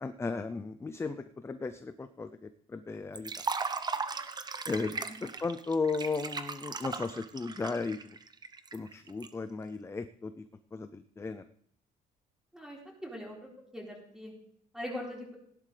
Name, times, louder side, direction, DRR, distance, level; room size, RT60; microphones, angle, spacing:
voice 1, 0.0-3.3 4.7-8.2 8.7-10.4 10.7-11.4, left 4 dB, 15° left, 10 dB, 0.5 m, -35 dB
Liquid, 3.2-9.3, right 4 dB, 25° right, 0.8 m, -37 dB
voice 2, 12.5-13.4 13.7-14.3 14.7-15.4, left 1 dB, 5° right, -3 dB, 4.6 m, -41 dB
16.5 x 11.0 x 3.4 m, 0.64 s
cardioid pair, 110°, 17 cm